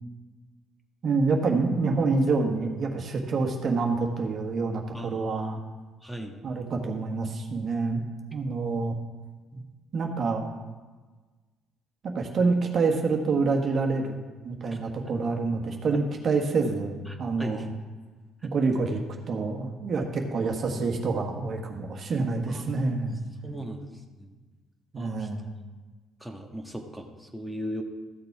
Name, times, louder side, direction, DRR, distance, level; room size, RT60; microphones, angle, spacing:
voice 1, 1.0-5.6 6.4-8.0 8.3-8.9 9.9-10.5 12.0-14.1 14.4-17.7 18.5-19.0 19.3-23.2 24.9-25.5, right 4 dB, 50° right, 2 dB, 1.6 m, -27 dB
voice 2, 4.9-5.5 6.0-6.4 9.5-9.7 14.7-14.8 15.9-16.0 17.1-17.7 22.5-23.0 23.4-23.9 24.2-24.3 25.0-25.3 26.2-27.8, right 1 dB, ahead, 3 dB, 1.7 m, -38 dB
13.5 x 6.7 x 4.8 m, 1.3 s
supercardioid pair, 60°, 0 cm